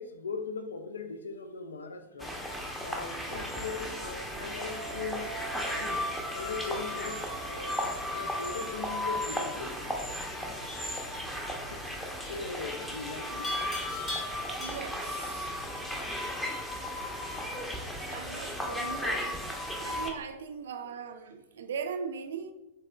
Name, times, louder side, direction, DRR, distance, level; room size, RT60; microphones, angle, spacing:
voice 1, 0.0-2.4 2.8-7.8 8.1-9.8 11.7-11.9 12.2-13.5, left 4 dB, 70° left, 0.4 m, -40 dB
sound 1, 2.2-20.1, left 1 dB, 5° left, 0.7 m, -35 dB
Wind instrument woodwind instrument, 4.5-9.2, right 6 dB, 50° left, 1.1 m, -46 dB
Livestock farm animals working animals, 10.7-11.0 13.4-15.1, left 1 dB, 30° left, 1.3 m, -39 dB
voice 2, 14.6-15.5 18.1-19.4 19.8-22.5, right 6 dB, 60° right, 0.4 m, -39 dB
7.1 x 2.7 x 2.2 m
figure-of-eight pair, 90°, 0 cm